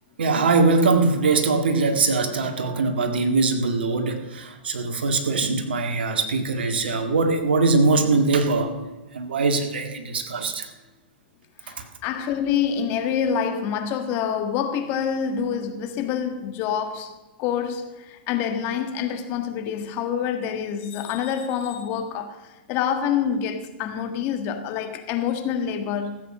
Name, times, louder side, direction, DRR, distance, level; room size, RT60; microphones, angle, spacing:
voice 1, 0.2-8.8 9.1-10.7, right 3 dB, 80° right, 1.8 m, -22 dB
voice 2, 11.6-17.1 17.4-26.2, left 8 dB, 45° left, 1.6 m, -27 dB
15.0 x 7.9 x 6.5 m
hypercardioid pair, 110°, 5 cm